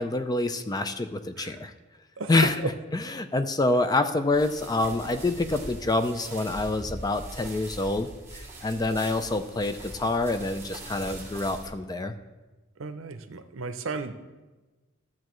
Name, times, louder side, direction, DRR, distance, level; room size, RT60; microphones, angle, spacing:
voice 1, 0.0-1.7 2.3-12.1, left 2 dB, 20° left, 9 dB, 0.4 m, -27 dB
sound 1, 4.3-11.7, right 2 dB, 15° right, 1.9 m, -42 dB
voice 2, 12.8-14.2, right 4 dB, 75° right, 9 dB, 0.7 m, -36 dB
14.0 x 7.3 x 3.1 m, 1.2 s
head